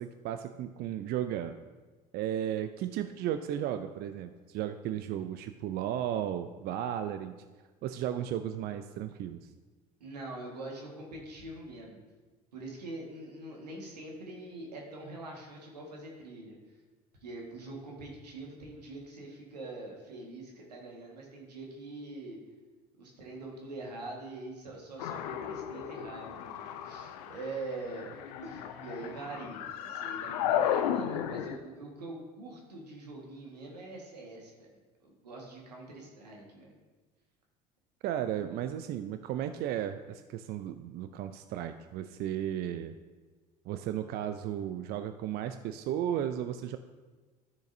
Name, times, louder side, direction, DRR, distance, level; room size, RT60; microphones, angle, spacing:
voice 1, 0.0-1.6 2.1-7.3 7.8-9.4 38.0-42.9 43.7-46.8, right 10 dB, 50° right, 9 dB, 0.5 m, -34 dB
voice 2, 10.0-12.0 12.5-16.6 17.2-22.4 23.0-28.1 28.4-34.7 35.0-36.7, right 2 dB, 90° right, -1 dB, 1.6 m, -44 dB
sound 1, 25.0-31.6, left 9 dB, 75° left, 0.6 m, -34 dB
12.0 x 6.4 x 2.7 m, 1.3 s
hypercardioid pair, 65°, 20 cm